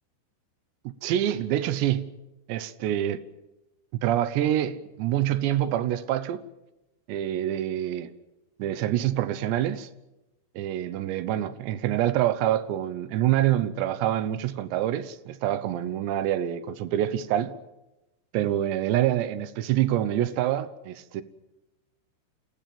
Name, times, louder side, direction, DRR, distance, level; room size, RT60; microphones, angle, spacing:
voice 1, 0.8-2.1 2.5-3.2 3.9-6.4 7.1-8.1 8.6-9.9 10.6-17.6 18.3-21.2, right 12 dB, 75° right, 3.0 m, -26 dB
27.5 x 17.0 x 7.6 m
omnidirectional pair, 5.5 m